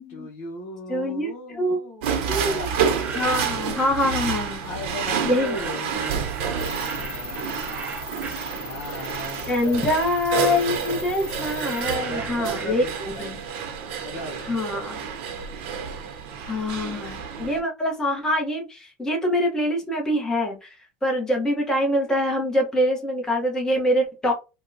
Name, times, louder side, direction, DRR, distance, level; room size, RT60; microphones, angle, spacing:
voice 1, 0.0-2.8 4.6-6.3 6.5-7.9 8.3-10.3 12.0-13.4 14.0-14.5, left 1 dB, 55° left, -2 dB, 0.9 m, -37 dB
voice 2, 0.9-1.8 2.3-2.7 3.1-4.6 5.2-5.6 9.5-12.8 13.2-13.4 14.5-15.0 16.4-24.3, left 1 dB, 10° left, 0 dB, 1.0 m, -24 dB
sound 1, 2.0-17.6, right 7 dB, 80° right, 0.8 m, -29 dB
sound 2, 2.8-4.0 5.0-9.2 9.6-13.3, right 5 dB, 25° right, 0.5 m, -39 dB
sound 3, 6.6-12.0, left 6 dB, 40° left, 0.5 m, -39 dB
3.6 x 2.2 x 2.6 m, 0.28 s
supercardioid pair, 145°, 6 cm